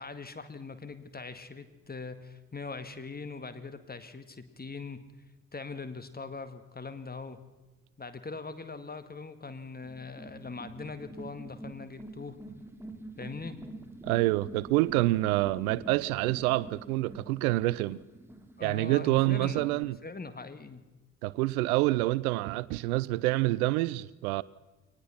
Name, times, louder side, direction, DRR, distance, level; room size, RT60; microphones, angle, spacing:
voice 1, 0.0-5.1 5.5-7.4 8.0-12.4 13.2-13.6 18.6-20.8, left 4 dB, 20° left, 1.9 m, -41 dB
sound 1, 9.8-19.8, right 2 dB, 5° right, 2.8 m, -47 dB
voice 2, 14.0-18.0 18.6-20.0 21.2-24.4, right 18 dB, 70° right, 0.6 m, -27 dB
23.0 x 19.5 x 5.8 m
figure-of-eight pair, 45°, 45 cm